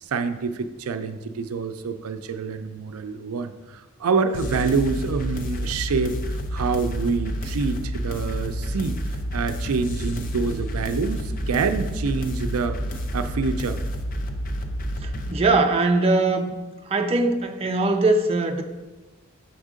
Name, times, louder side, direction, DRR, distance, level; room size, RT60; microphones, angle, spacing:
voice 1, 0.0-13.8, right 4 dB, 90° right, 8 dB, 0.4 m, -27 dB
sound 1, 4.3-15.3, equal, 40° left, 0.5 m, -29 dB
voice 2, 15.0-16.5 16.9-18.6, right 2 dB, 25° right, 3 dB, 0.4 m, -21 dB
7.3 x 3.6 x 5.0 m, 1.1 s
head